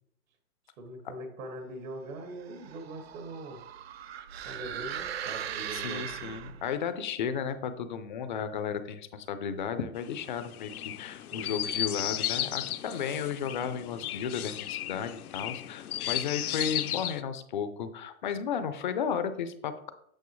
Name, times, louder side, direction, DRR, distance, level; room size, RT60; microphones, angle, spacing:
voice 1, 0.8-3.6 4.4-6.4 11.3-12.0, right 1 dB, 65° right, 3 dB, 1.8 m, -42 dB
sound 1, 2.3-6.8, right 9 dB, 45° right, 0.4 m, -39 dB
voice 2, 5.7-19.9, left 7 dB, 35° left, 10 dB, 0.5 m, -34 dB
Chirp tweet, 10.0-17.2, left 12 dB, 80° left, 0.7 m, -35 dB
8.5 x 6.3 x 3.1 m, 0.70 s
hypercardioid pair, 160°, 44 cm